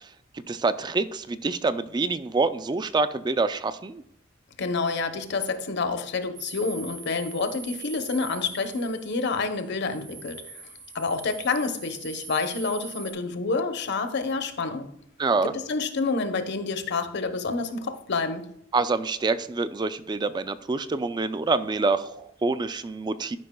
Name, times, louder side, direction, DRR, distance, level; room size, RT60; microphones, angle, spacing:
voice 1, 0.5-4.0 15.2-15.5 18.7-23.4, right 3 dB, 20° right, 0.3 m, -26 dB
voice 2, 4.6-10.5 10.9-14.9 15.4-18.5, left 4 dB, 60° left, 0.8 m, -28 dB
sound 1, 6.4-13.1, right 4 dB, 90° right, 1.7 m, -42 dB
11.5 x 5.4 x 2.2 m
head